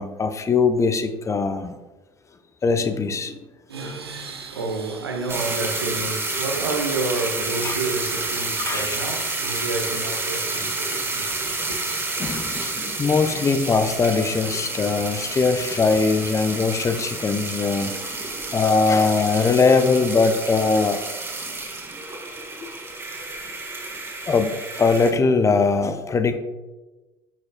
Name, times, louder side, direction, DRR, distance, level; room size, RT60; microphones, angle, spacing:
voice 1, 0.0-1.7 2.6-3.4 7.6-7.7 8.6-9.0 12.2-17.9 18.5-21.0 22.6-22.7 24.3-26.4, left 4 dB, 25° left, 0.7 m, -21 dB
voice 2, 3.7-11.8, right 3 dB, 80° right, 0.9 m, -30 dB
sound 1, 5.3-25.1, right 2 dB, 20° right, 1.5 m, -29 dB
10.0 x 6.4 x 2.3 m
figure-of-eight pair, 60°, 13 cm